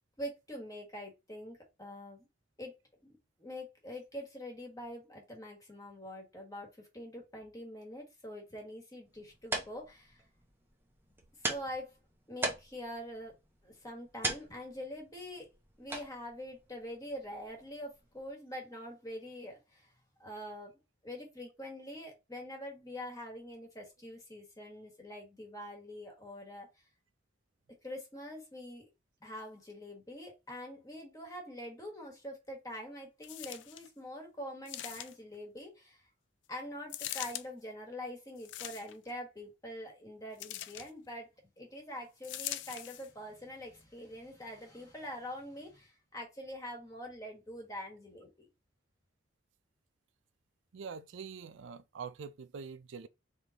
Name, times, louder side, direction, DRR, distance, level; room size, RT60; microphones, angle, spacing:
voice 1, 0.2-2.3 2.6-2.7 3.4-10.2 11.4-11.9 12.3-13.4 13.6-15.5 15.8-19.9 20.2-20.7 21.0-26.7 27.8-28.9 29.2-36.0 36.5-41.3 41.6-48.5, equal, 20° left, 1.5 m, -44 dB
sound 1, 9.0-18.3, right 2 dB, 10° right, 0.8 m, -42 dB
sound 2, 33.2-33.9 34.7-35.4 36.9-37.5 38.4-39.1 40.4-40.9 42.2-43.1 43.8-43.9, left 13 dB, 70° left, 0.4 m, -42 dB
voice 2, 50.7-53.1, right 6 dB, 80° right, 0.4 m, -44 dB
3.8 x 3.4 x 2.9 m
head